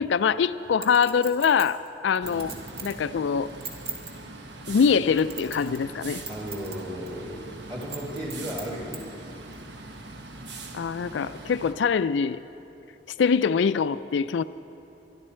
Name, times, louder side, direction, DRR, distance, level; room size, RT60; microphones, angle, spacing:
voice 1, 0.0-2.5 2.8-3.5 4.7-6.2 10.7-12.4 13.2-14.4, left 6 dB, 80° left, 13 dB, 0.4 m, -23 dB
Chink clink, 0.8-3.0 3.5-4.1 4.8-5.9 6.2-6.8 7.1-7.2 7.8-9.0 9.5-9.6, right 5 dB, 55° right, 1.9 m, -38 dB
sound 1, 2.2-11.7, right 2 dB, 70° right, 1.1 m, -42 dB
voice 2, 6.3-9.5, equal, 25° right, -2 dB, 2.5 m, -36 dB
24.5 x 11.5 x 4.4 m, 2.8 s
head